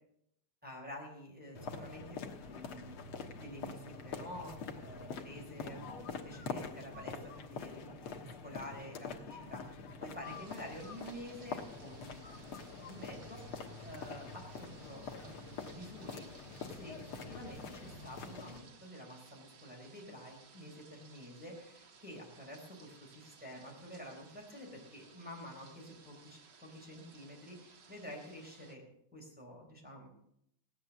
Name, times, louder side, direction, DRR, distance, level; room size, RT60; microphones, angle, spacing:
voice 1, 0.6-3.0 3.3-4.5 4.8-12.3 12.7-13.4 13.8-16.3 16.6-28.8 29.1-30.1, equal, 5° right, -2 dB, 3.9 m, -49 dB
sound 1, 1.6-18.6, left 5 dB, 75° left, 2.2 m, -45 dB
sound 2, 10.2-28.8, right 5 dB, 55° right, 2.0 m, -60 dB
17.0 x 9.5 x 7.1 m, 0.75 s
omnidirectional pair, 2.4 m